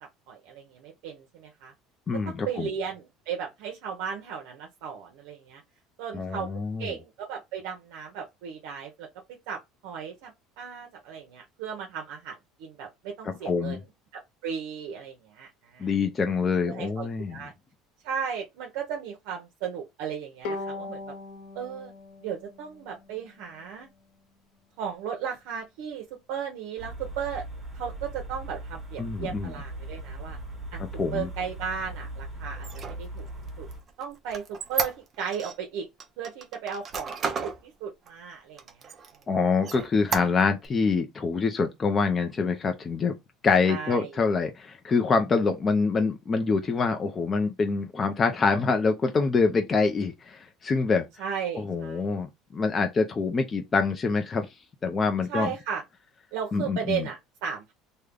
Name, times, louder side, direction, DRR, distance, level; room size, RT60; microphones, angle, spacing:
voice 1, 0.3-1.7 2.3-5.6 6.0-6.5 6.8-9.1 9.5-13.9 14.1-16.0 16.7-17.5 18.0-21.0 21.5-21.9 22.2-23.9 24.8-27.4 27.7-30.4 30.7-30.8 31.1-33.3 33.6-33.7 34.0-35.9 36.2-37.1 37.4-38.9 43.7-44.2 51.2-52.1 55.3-55.8 56.3-57.7, right 7 dB, 75° right, 0.7 m, -35 dB
voice 2, 2.1-2.7 6.1-6.9 13.5-13.8 15.8-17.4 29.0-29.5 31.0-31.3 39.3-43.2 43.4-51.1 51.5-52.3 52.5-54.5 54.8-55.5 56.5-57.0, left 4 dB, 25° left, 0.4 m, -25 dB
Bowed string instrument, 20.4-23.8, left 2 dB, 75° left, 0.7 m, -39 dB
sound 1, 26.8-33.8, right 1 dB, 5° right, 1.3 m, -39 dB
Squeak, 32.5-35.5 36.0-37.6 38.1-38.2 38.6-39.2 39.6-40.7, right 5 dB, 30° right, 0.6 m, -33 dB
3.3 x 2.1 x 3.6 m
cardioid pair, 150°, 0 cm